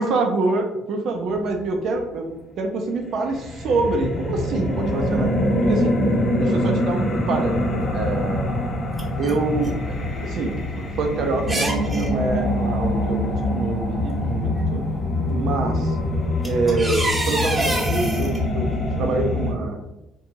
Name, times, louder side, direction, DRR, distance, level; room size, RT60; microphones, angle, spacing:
voice 1, 0.0-5.3 5.6-6.0 6.4-8.5 9.2-14.9 15.3-16.0 16.4-18.7 19.0-19.8, right 3 dB, 65° right, 4 dB, 0.5 m, -26 dB
sound 1, 3.2-19.5, left 1 dB, 45° left, 0.7 m, -24 dB
sound 2, 7.9-8.0 8.7-9.8 10.1-10.2 10.8-10.9 11.4-12.1 13.5-13.6 14.2-14.6 15.8-15.9 16.2-18.4, right 1 dB, 15° right, 0.7 m, -27 dB
2.5 x 2.2 x 2.9 m, 0.94 s
supercardioid pair, 65°, 0 cm